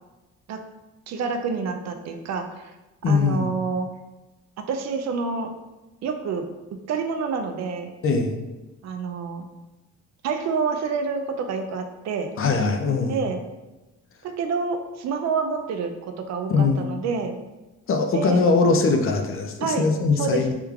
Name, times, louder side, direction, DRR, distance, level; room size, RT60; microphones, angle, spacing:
voice 1, 1.1-2.7 3.1-3.9 4.6-5.5 6.0-6.4 6.9-7.9 8.8-9.5 10.2-12.3 13.1-13.4 14.2-17.4 18.1-18.5 19.6-19.9 20.2-20.5, right 5 dB, 65° right, 6 dB, 0.4 m, -28 dB
voice 2, 3.0-3.5 8.0-8.3 12.4-13.2 16.5-16.9 17.9-20.5, left 4 dB, 45° left, 5 dB, 0.5 m, -21 dB
3.4 x 3.1 x 2.3 m, 1.1 s
cardioid pair, 90°, 30 cm